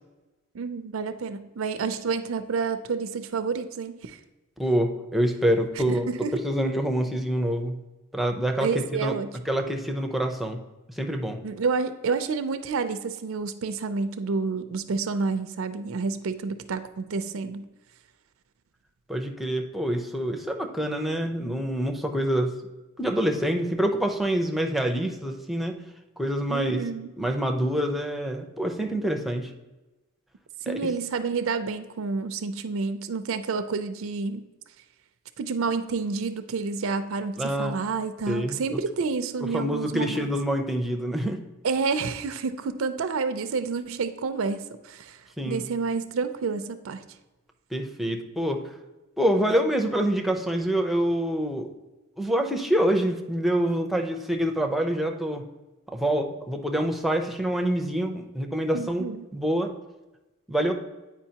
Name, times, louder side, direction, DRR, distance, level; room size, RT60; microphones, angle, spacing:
voice 1, 0.5-4.2 5.7-6.3 8.6-9.4 11.4-17.6 26.5-27.1 30.6-34.5 35.4-40.3 41.6-47.0 58.7-59.3, right 4 dB, 70° right, 10 dB, 0.5 m, -29 dB
voice 2, 4.6-6.1 6.3-7.8 8.1-8.7 9.0-9.1 9.5-10.6 11.0-11.4 19.1-22.5 23.0-25.8 26.2-26.8 27.2-29.5 30.7-30.8 37.4-37.8 38.3-38.8 39.5-41.4 45.4-45.6 47.7-48.6 49.2-51.7 52.2-55.4 56.0-59.1 59.3-59.7 60.5-60.7, right 1 dB, ahead, 3 dB, 0.6 m, -26 dB
8.9 x 4.9 x 2.8 m, 1.1 s
head